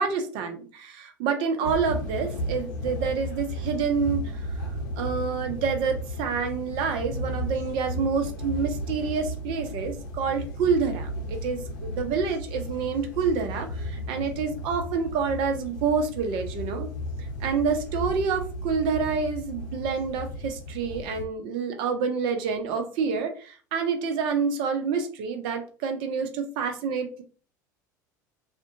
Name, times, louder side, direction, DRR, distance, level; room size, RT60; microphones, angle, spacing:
voice 1, 0.0-4.3 5.0-16.9 17.4-27.2, right 5 dB, 55° right, 6 dB, 0.6 m, -28 dB
sound 1, 1.6-21.2, equal, 65° left, 0.6 m, -34 dB
2.4 x 2.1 x 2.6 m, 0.38 s
figure-of-eight pair, 70°, 10 cm